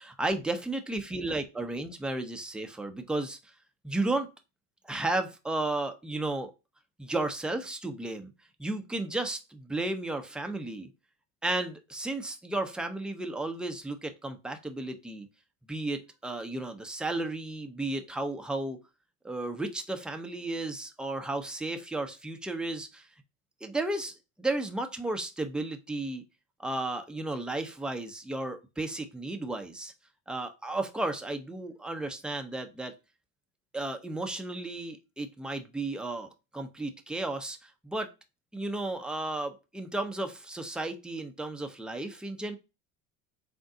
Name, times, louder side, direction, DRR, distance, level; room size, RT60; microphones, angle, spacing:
voice 1, 0.0-3.4 3.8-4.3 4.9-6.5 7.0-8.3 8.6-10.9 11.4-15.3 15.7-18.8 19.2-23.1 23.6-26.2 26.6-29.9 30.3-32.9 33.7-38.1 38.5-42.6, right 2 dB, ahead, 6 dB, 0.6 m, -33 dB
3.9 x 2.6 x 3.7 m, 0.27 s
hypercardioid pair, 80°, 41 cm